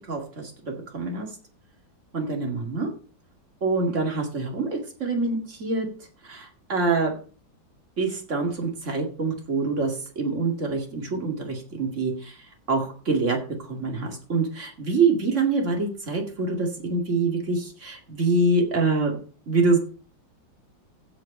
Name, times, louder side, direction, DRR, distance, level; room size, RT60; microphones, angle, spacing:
voice 1, 0.1-1.3 2.1-2.9 3.6-5.9 6.2-7.1 8.0-12.4 12.7-19.2 19.5-19.8, right 3 dB, 40° right, 2 dB, 2.4 m, -25 dB
15.0 x 5.3 x 5.3 m, 0.40 s
omnidirectional pair, 2.1 m